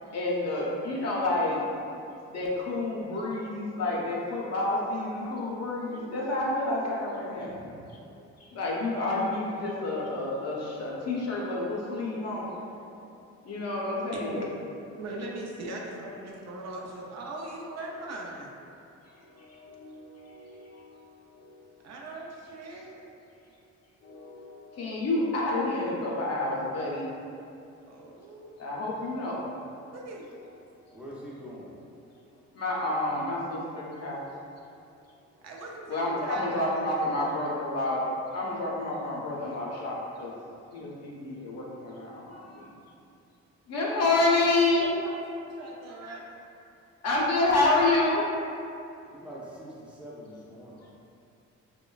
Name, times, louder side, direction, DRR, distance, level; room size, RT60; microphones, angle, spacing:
voice 1, 0.0-1.7 2.3-7.7 8.5-12.7 13.0-13.1 13.4-14.4 19.3-20.9 21.3-21.5 24.0-27.1 28.6-29.5 32.5-34.3 35.9-40.3 40.7-42.7 43.7-44.9 47.0-48.2, left 2 dB, 55° left, -4 dB, 0.6 m, -29 dB
voice 2, 8.7-9.5 14.1-14.5 14.9-18.5 21.8-23.0 27.9-28.5 29.9-30.3 35.4-36.9 44.7-46.2, right 2 dB, 60° right, -2 dB, 0.5 m, -39 dB
voice 3, 30.9-31.7 49.1-50.8, equal, 5° right, -7 dB, 0.5 m, -44 dB
3.0 x 2.1 x 2.3 m, 2.6 s
cardioid pair, 90°, 30 cm